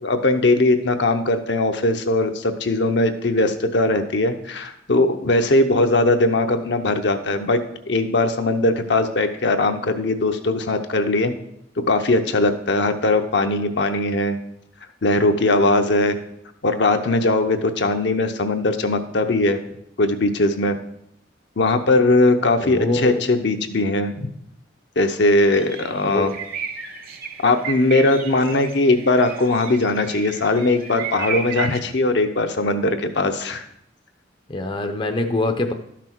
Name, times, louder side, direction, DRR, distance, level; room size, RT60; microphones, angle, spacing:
voice 1, 0.0-7.6 7.9-11.3 11.9-14.4 15.0-16.2 16.6-19.6 20.0-20.8 21.6-24.3 25.0-26.3 27.4-33.7, left 2 dB, 65° left, 6 dB, 0.8 m, -20 dB
voice 2, 22.6-23.2 26.0-26.4 34.5-35.7, left 2 dB, 25° left, 6 dB, 0.6 m, -24 dB
sound 1, 25.5-31.8, right 6 dB, 50° right, 1.0 m, -33 dB
12.0 x 6.0 x 4.5 m, 0.75 s
head